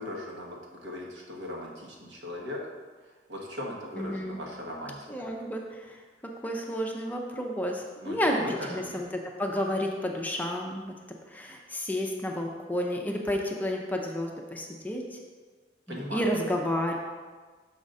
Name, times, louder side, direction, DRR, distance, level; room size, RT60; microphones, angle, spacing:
voice 1, 0.0-2.6 3.0-5.1 8.0-9.0 15.9-16.3, left 1 dB, 80° right, -2 dB, 1.3 m, -38 dB
voice 2, 4.0-4.4 5.1-8.4 8.7-9.1 9.4-10.9 11.3-15.0 15.9-17.0, equal, 10° left, 1 dB, 0.5 m, -31 dB
6.2 x 3.8 x 5.3 m, 1.4 s
head